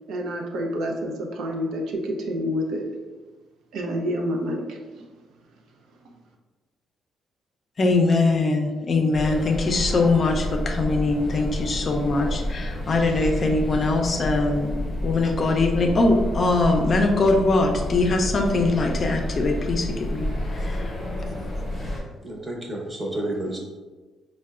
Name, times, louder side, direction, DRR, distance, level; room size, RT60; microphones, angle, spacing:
voice 1, 0.1-2.8 3.7-5.1, equal, 80° right, 0 dB, 0.4 m, -28 dB
voice 2, 7.8-20.3 20.6-20.8, left 3 dB, 45° left, 3 dB, 0.4 m, -22 dB
sound 1, 9.1-22.0, left 1 dB, 15° left, 0.8 m, -30 dB
voice 3, 22.2-23.6, right 1 dB, 25° right, -1 dB, 0.8 m, -30 dB
4.2 x 2.1 x 2.3 m, 1.3 s
cardioid pair, 90°, 0 cm